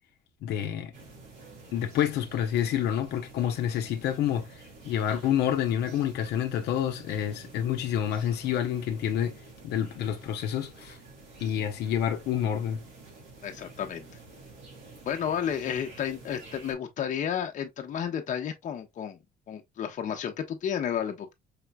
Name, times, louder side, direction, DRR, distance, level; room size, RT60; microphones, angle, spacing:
voice 1, 0.4-0.9 1.7-4.5 4.8-9.3 9.6-11.0 11.4-12.8, left 10 dB, 75° left, 0.8 m, -28 dB
sound 1, 0.9-16.7, right 3 dB, 85° right, 2.8 m, -49 dB
voice 2, 13.4-14.1 15.0-19.2 19.5-21.3, left 8 dB, 50° left, 0.9 m, -32 dB
5.0 x 3.2 x 2.2 m
cardioid pair, 110°, 17 cm